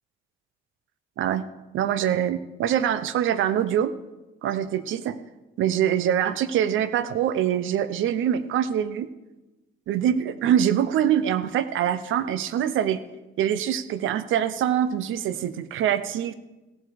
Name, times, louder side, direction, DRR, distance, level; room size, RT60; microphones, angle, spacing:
voice 1, 1.7-3.9 4.4-5.2 5.6-9.1 9.9-13.0 13.4-16.3, right 10 dB, 80° right, 14 dB, 0.7 m, -24 dB
16.5 x 7.9 x 4.9 m, 1.1 s
cardioid pair, 90°, 20 cm